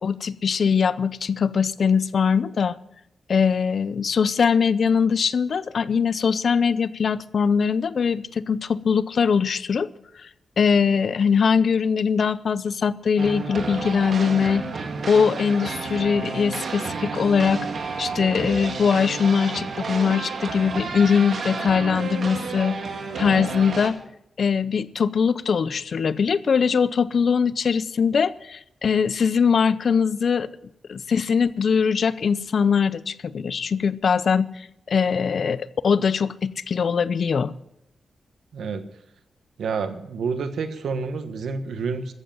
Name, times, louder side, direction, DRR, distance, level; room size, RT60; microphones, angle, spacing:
voice 1, 0.0-2.8 3.3-9.9 10.2-10.3 10.6-14.7 15.1-17.7 18.0-22.8 23.2-24.0 24.4-30.5 30.9-37.5, left 6 dB, 65° left, 17 dB, 0.6 m, -21 dB
sound 1, 13.2-23.9, right 4 dB, 65° right, 2.0 m, -31 dB
voice 2, 38.5-38.8 39.6-42.1, right 5 dB, 90° right, 9 dB, 1.2 m, -28 dB
14.5 x 7.8 x 8.9 m, 0.80 s
cardioid pair, 90°, 0 cm